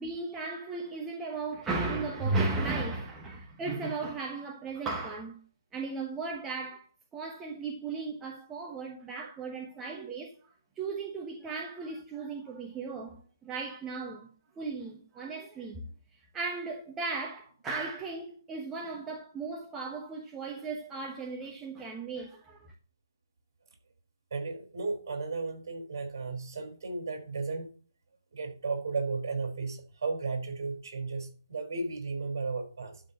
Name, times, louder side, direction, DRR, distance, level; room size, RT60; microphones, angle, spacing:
voice 1, 0.0-5.4 5.7-6.8 7.1-10.3 10.8-15.9 16.3-22.7, right 3 dB, 10° right, 1.1 m, -36 dB
voice 2, 24.3-27.7 28.3-33.0, right 4 dB, 55° right, 4.9 m, -34 dB
12.0 x 4.4 x 8.0 m
hypercardioid pair, 160°, 2 cm